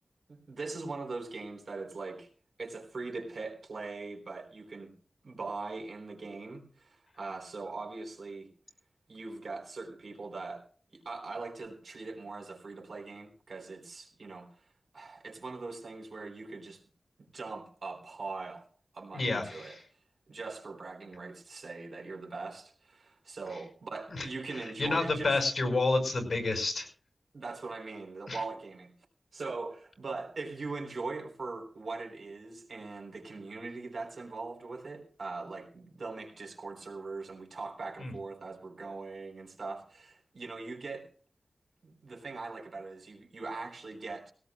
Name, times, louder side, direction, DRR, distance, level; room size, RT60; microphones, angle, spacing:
voice 1, 0.3-2.3 2.6-4.9 5.2-8.5 9.1-10.7 10.9-14.7 14.9-16.8 17.2-18.7 18.9-19.8 20.3-25.4 27.3-28.9 29.3-41.1 41.8-44.3, right 3 dB, 80° right, 3 dB, 3.7 m, -41 dB
voice 2, 19.1-19.8 24.1-24.3 24.8-26.9 28.3-28.4 38.0-38.1, left 3 dB, 55° left, 6 dB, 5.7 m, -29 dB
20.0 x 17.5 x 2.3 m, 0.39 s
wide cardioid pair, 75°, 0 cm